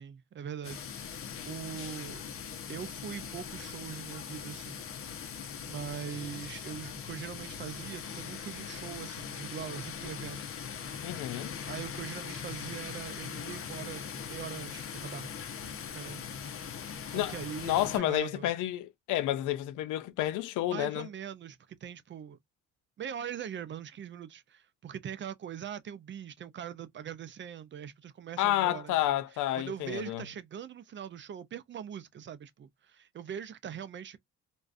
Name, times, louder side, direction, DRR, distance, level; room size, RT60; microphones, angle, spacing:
voice 1, 0.0-2.3 2.7-4.8 5.6-10.4 11.6-15.3 15.9-16.2 17.1-18.5 20.7-22.4 23.0-29.2 29.5-34.2, right 9 dB, 40° right, 0.4 m, -42 dB
sound 1, 0.6-18.0, left 7 dB, 45° left, 0.7 m, -41 dB
voice 2, 11.0-11.5 17.1-17.3 17.6-21.1 28.4-30.2, left 14 dB, 85° left, 0.5 m, -30 dB
2.4 x 2.2 x 2.4 m
cardioid pair, 90°, 30 cm